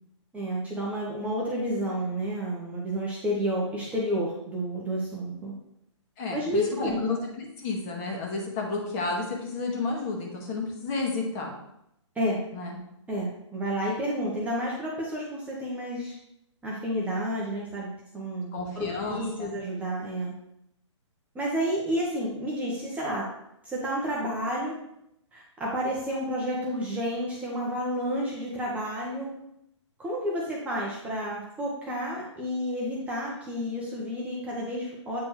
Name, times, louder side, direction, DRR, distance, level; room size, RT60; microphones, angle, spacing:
voice 1, 0.3-5.5 6.3-7.0 12.1-12.4 13.1-16.1 16.6-17.9 18.1-20.3 21.3-23.2 23.6-24.7 25.3-29.3 30.0-35.2, equal, 10° right, -4 dB, 0.9 m, -30 dB
voice 2, 6.2-11.5 12.5-12.8 18.5-19.6, left 3 dB, 30° left, 0 dB, 1.6 m, -31 dB
8.3 x 4.3 x 3.2 m, 0.80 s
hypercardioid pair, 145°, 16 cm